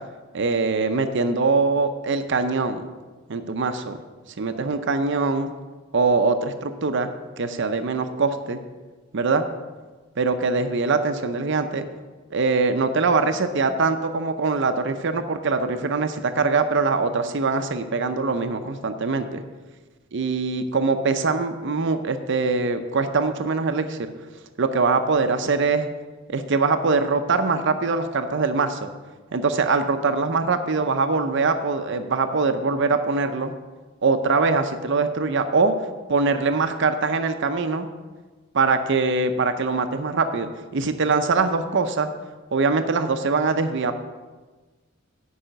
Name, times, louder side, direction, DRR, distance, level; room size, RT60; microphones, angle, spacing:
voice 1, 0.3-2.8 3.3-4.0 4.4-5.5 5.9-7.1 7.4-8.6 9.1-9.5 10.2-11.9 12.3-19.4 20.1-24.1 24.6-25.9 26.3-28.9 29.3-33.5 34.0-35.7 36.1-37.9 38.5-42.1 42.5-43.9, right 4 dB, 60° right, 8 dB, 0.6 m, -23 dB
8.5 x 5.5 x 7.9 m, 1.3 s
head